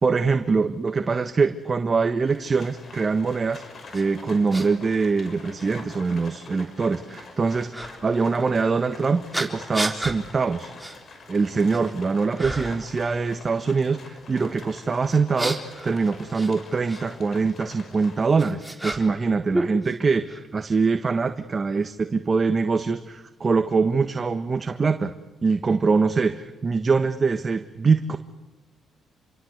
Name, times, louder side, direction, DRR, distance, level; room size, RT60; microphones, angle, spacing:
voice 1, 0.0-3.6 3.9-10.7 11.3-25.1 25.4-28.2, right 4 dB, 35° right, 8 dB, 1.4 m, -23 dB
Livestock farm animals working animals, 2.2-18.6, left 3 dB, 50° left, 6.2 m, -45 dB
sound 1, 3.9-4.0 4.5-4.7 5.6-5.7 7.7-7.9 9.3-10.2 10.8-11.0 11.4-11.9 12.4-12.9 15.1-17.0 18.0-19.3 19.5-20.4, right 1 dB, 5° right, 3.6 m, -31 dB
28.0 x 24.0 x 8.1 m, 1.1 s
cardioid pair, 90°, 0 cm